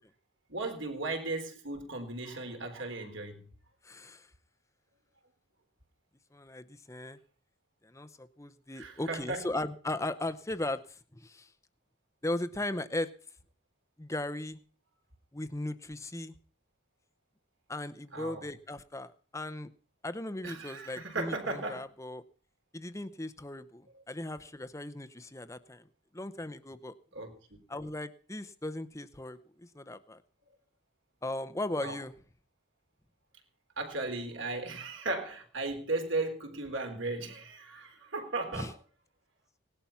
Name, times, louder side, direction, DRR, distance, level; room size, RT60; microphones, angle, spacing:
voice 1, 0.5-3.4 8.7-9.4 18.1-18.5 20.4-21.8 27.1-27.3 31.8-32.0 33.8-38.8, right 2 dB, 65° right, 4.0 m, -36 dB
voice 2, 3.8-4.3 6.3-7.2 7.8-11.5 12.2-13.1 14.0-14.6 15.3-16.3 17.7-19.7 20.0-22.2 22.7-25.8 26.1-26.9 27.7-30.2 31.2-32.1 38.5-38.7, left 1 dB, 15° left, 0.7 m, -37 dB
18.5 x 11.5 x 5.7 m
head